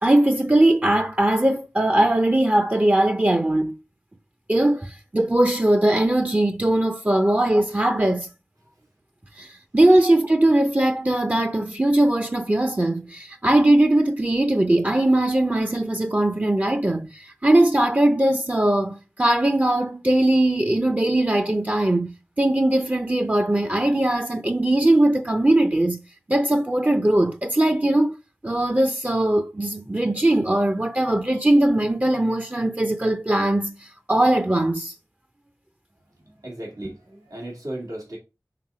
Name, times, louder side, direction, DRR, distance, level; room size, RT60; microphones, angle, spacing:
voice 1, 0.0-3.8 4.5-8.3 9.4-9.5 9.7-26.0 26.3-28.1 28.4-33.8 34.1-34.9, right 1 dB, 25° right, 0.6 m, -20 dB
voice 2, 36.4-38.2, right 1 dB, 85° right, 2.2 m, -35 dB
5.9 x 3.8 x 4.8 m
wide cardioid pair, 45°, 6 cm